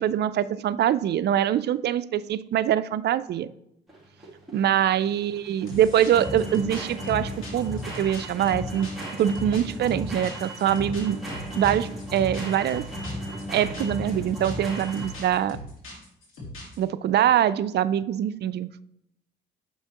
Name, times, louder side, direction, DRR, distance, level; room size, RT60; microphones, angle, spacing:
voice 1, 0.0-3.5 4.5-11.2 11.5-12.9 13.5-15.6 16.8-18.8, right 10 dB, 60° right, 15 dB, 0.4 m, -24 dB
sound 1, 3.9-15.5, equal, ahead, 2.7 m, -35 dB
sound 2, 5.7-16.8, left 1 dB, 80° left, 2.5 m, -40 dB
8.1 x 5.6 x 2.9 m, 0.77 s
cardioid pair, 90°, 20 cm